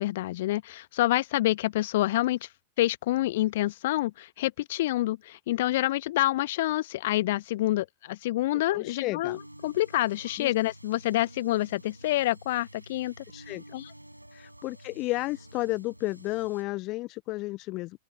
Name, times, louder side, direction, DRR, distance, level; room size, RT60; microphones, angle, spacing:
voice 1, 0.0-2.5 2.8-13.1 13.7-13.9, left 16 dB, 55° left, 1.0 m, -27 dB
voice 2, 8.7-9.4 10.4-10.5 13.3-13.6 14.3-17.9, left 20 dB, 40° left, 0.4 m, -32 dB
sound 1, 9.2-16.6, right 1 dB, 85° right, 4.9 m, -50 dB
open air
figure-of-eight pair, 90°, 0 cm